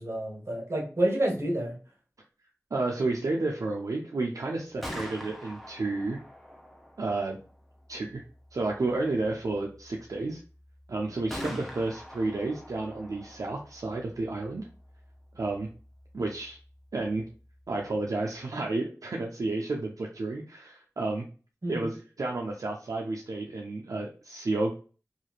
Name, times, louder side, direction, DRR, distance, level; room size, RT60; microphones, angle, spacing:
voice 1, 0.0-1.7 11.4-11.6 21.6-21.9, right 1 dB, 50° right, -1 dB, 1.2 m, -29 dB
voice 2, 2.7-6.2 7.0-7.4 7.9-8.2 8.5-10.4 10.9-14.7 15.3-15.7 16.1-16.6 16.9-17.3 17.7-21.3 21.7-24.7, right 2 dB, 75° right, 0 dB, 0.4 m, -31 dB
Gunshot gunfire, 4.6-18.4, equal, ahead, 0.6 m, -47 dB
3.0 x 2.4 x 2.3 m, 0.38 s
wide cardioid pair, 45°, 6 cm